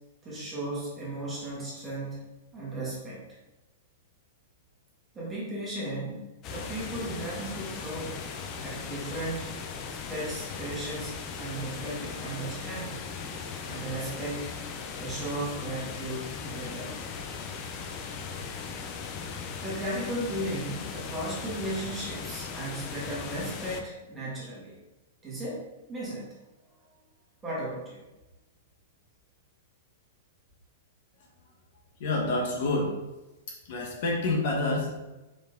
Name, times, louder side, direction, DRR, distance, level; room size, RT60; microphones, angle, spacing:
voice 1, 0.2-3.2 5.1-8.2 8.6-9.6 9.9-13.0 13.6-14.5 15.0-16.9 19.6-24.8 25.2-25.6 25.9-26.3 27.4-28.0, right 1 dB, 10° right, -7 dB, 2.0 m, -35 dB
sound 1, 6.4-23.8, left 5 dB, 30° left, 0.6 m, -38 dB
voice 2, 32.0-32.9 33.5-34.9, left 2 dB, 50° left, -2 dB, 1.5 m, -28 dB
5.2 x 4.8 x 3.9 m, 1.0 s
supercardioid pair, 165°, 0 cm